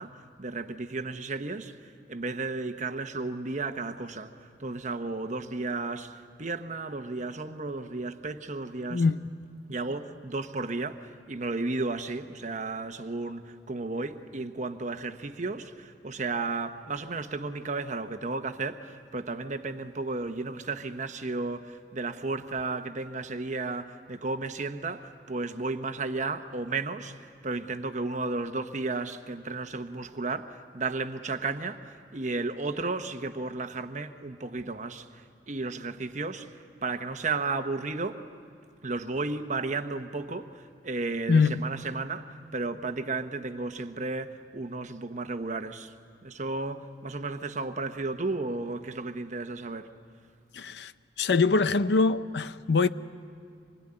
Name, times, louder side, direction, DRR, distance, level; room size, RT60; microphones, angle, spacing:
voice 1, 0.0-1.7 2.1-4.3 4.6-9.0 9.7-36.5 36.8-38.2 38.8-45.9 46.2-49.9, right 3 dB, 45° right, 1.1 m, -33 dB
voice 2, 8.9-9.2 41.3-41.6 50.5-50.9 51.2-52.9, left 4 dB, 75° left, 0.6 m, -23 dB
26.0 x 20.5 x 9.9 m
head